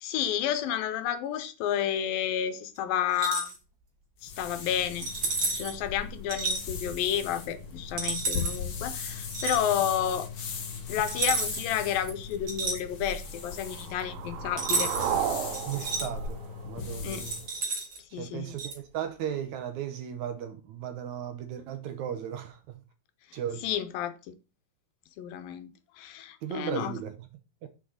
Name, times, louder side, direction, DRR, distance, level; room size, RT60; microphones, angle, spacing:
voice 1, 0.0-3.5 4.2-5.1 5.5-10.3 10.9-14.9 17.0-17.3 18.1-18.6 23.6-24.3 25.2-25.7 25.9-26.9, left 10 dB, 80° left, 2.7 m, -31 dB
sound 1, 3.1-3.5 5.0-5.8 6.3-6.6 8.0-8.6 9.3-9.6 11.1-11.7 12.0-13.2 14.6-15.1 15.5-16.1 17.1-18.0 18.6-18.8, right 3 dB, 40° right, 2.6 m, -31 dB
sound 2, 4.2-17.5, left 5 dB, 45° left, 1.9 m, -39 dB
sound 3, 13.4-17.4, right 10 dB, 90° right, 2.7 m, -34 dB
voice 2, 15.7-17.5 18.1-22.8 23.3-23.7 26.4-27.3 27.6-27.7, right 9 dB, 70° right, 2.0 m, -36 dB
6.9 x 5.8 x 6.4 m
omnidirectional pair, 4.0 m